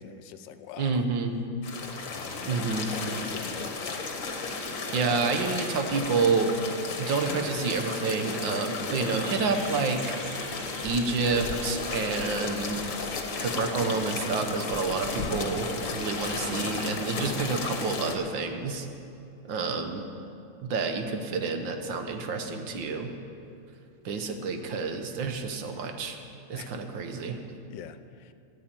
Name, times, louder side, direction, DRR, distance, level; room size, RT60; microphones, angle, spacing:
voice 1, 0.0-1.0 2.1-2.5 3.2-3.7 26.5-26.7 27.7-28.3, left 8 dB, 75° left, 11 dB, 1.3 m, -44 dB
voice 2, 0.8-1.3 2.4-2.9 4.5-6.5 7.0-10.0 10.8-12.8 13.4-18.9 19.5-20.0 20.6-23.1 24.1-26.2 26.5-27.4, right 4 dB, 75° right, 5 dB, 1.7 m, -29 dB
sound 1, 1.6-18.2, left 4 dB, 50° left, 1.4 m, -34 dB
sound 2, 5.3-12.0, right 1 dB, 55° right, 4.4 m, -47 dB
14.0 x 7.4 x 8.9 m, 2.7 s
omnidirectional pair, 2.0 m